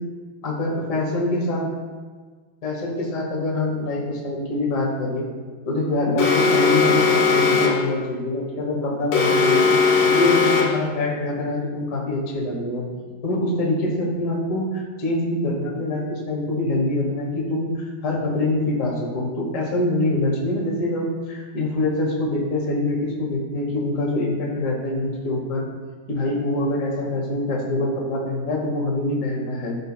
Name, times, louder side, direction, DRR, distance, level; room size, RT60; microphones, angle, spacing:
voice 1, 0.4-1.7 2.6-5.3 5.6-9.7 10.0-12.9 13.2-25.6 26.1-29.8, left 2 dB, 45° left, -3 dB, 1.0 m, -24 dB
Alarm, 6.2-7.9 9.1-10.9, left 5 dB, 85° left, 3.0 m, -18 dB
15.0 x 5.3 x 2.2 m, 1.5 s
omnidirectional pair, 4.1 m